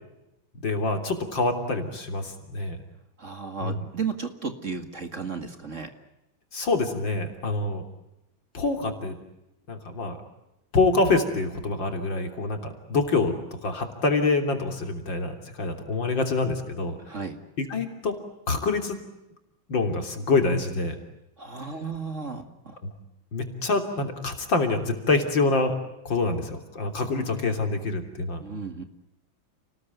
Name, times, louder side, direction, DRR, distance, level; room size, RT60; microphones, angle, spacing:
voice 1, 0.6-2.8 3.6-3.9 6.5-7.8 8.5-9.2 9.7-10.2 10.7-17.0 17.6-18.2 18.5-19.0 19.7-21.0 22.8-22.9 23.3-25.8 26.1-28.4, left 3 dB, 65° left, 5 dB, 3.9 m, -26 dB
voice 2, 3.2-5.9 17.0-17.4 21.4-22.8 28.4-28.8, right 5 dB, 40° right, 7 dB, 2.3 m, -34 dB
30.0 x 20.0 x 9.3 m, 0.93 s
omnidirectional pair, 2.2 m